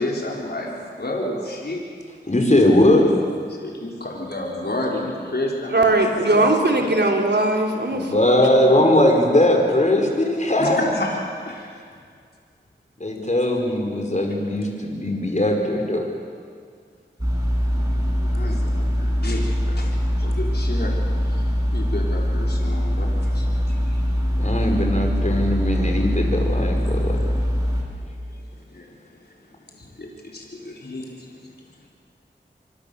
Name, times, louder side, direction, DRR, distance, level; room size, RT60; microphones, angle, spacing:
voice 1, 0.0-1.8 3.5-6.9 10.6-11.2 11.4-11.8 17.9-20.9 21.2-24.0 24.4-24.5 28.3-28.4 28.7-29.0 29.7-31.4, left 1 dB, 60° left, -2 dB, 4.3 m, -31 dB
voice 2, 2.3-3.0 7.9-10.9 13.0-16.0 24.4-27.2, left 1 dB, 40° left, 1 dB, 4.9 m, -19 dB
voice 3, 5.7-8.2 8.5-8.9, right 2 dB, 65° right, 1 dB, 3.7 m, -20 dB
sound 1, 17.2-27.8, equal, 20° right, 6.6 m, -22 dB
26.5 x 23.5 x 7.0 m, 2.1 s
cardioid pair, 40°, 19 cm